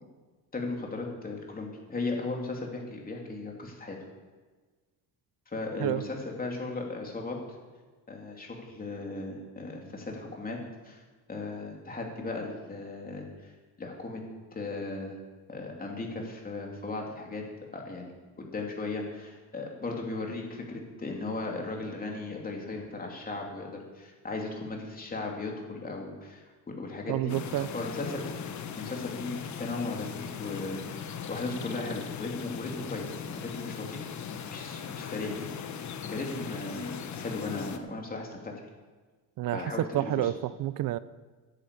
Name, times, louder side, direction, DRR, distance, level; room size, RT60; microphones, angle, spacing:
voice 1, 0.5-4.0 5.5-7.4 8.1-10.6 10.8-11.0 11.3-13.5 13.8-14.2 14.5-15.2 15.5-17.4 17.7-18.1 18.4-27.3 27.7-28.2 28.8-34.0 34.3-38.5 39.5-40.3, left 3 dB, 20° left, 0 dB, 3.2 m, -37 dB
voice 2, 27.1-27.7 39.4-41.0, right 14 dB, 60° right, 17 dB, 0.6 m, -29 dB
sound 1, 27.3-37.8, left 7 dB, 45° left, 1.3 m, -39 dB
10.5 x 9.2 x 8.6 m, 1.4 s
cardioid pair, 115°, 39 cm